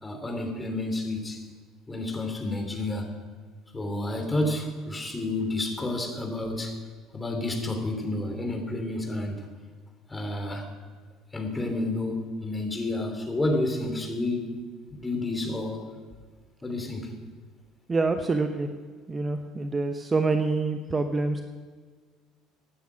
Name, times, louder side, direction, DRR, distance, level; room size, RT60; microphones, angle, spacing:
voice 1, 0.0-1.4 1.9-3.1 3.7-6.7 7.1-9.4 10.1-10.6 11.3-14.6 14.9-15.8 16.6-17.1, left 2 dB, 15° left, 3 dB, 3.2 m, -30 dB
voice 2, 17.9-18.7 19.1-21.4, right 3 dB, 25° right, 7 dB, 0.9 m, -26 dB
16.5 x 9.5 x 6.2 m, 1.5 s
figure-of-eight pair, 60°, 0 cm